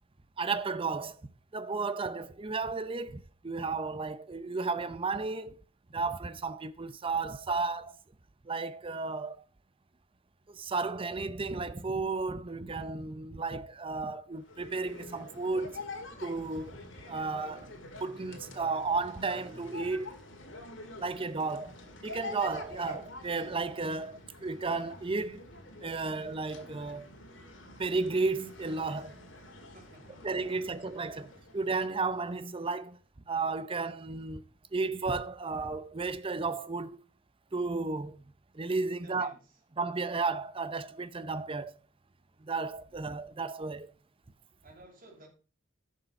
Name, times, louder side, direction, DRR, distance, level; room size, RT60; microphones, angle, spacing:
voice 1, 0.4-5.6 5.9-7.9 8.4-9.4 10.5-15.8 16.2-16.8 17.1-17.7 18.0-20.1 21.0-21.8 22.0-25.5 25.8-27.2 27.8-29.2 30.2-33.0 33.3-34.4 34.7-37.0 37.5-38.2 38.5-39.3 39.8-41.8 42.4-43.9, right 4 dB, 25° right, 0.6 m, -33 dB
sound 1, 14.4-32.9, left 2 dB, 70° left, 2.0 m, -47 dB
voice 2, 29.7-30.8 38.9-39.5 44.6-45.3, right 2 dB, 45° right, 2.9 m, -55 dB
11.0 x 6.5 x 4.3 m
head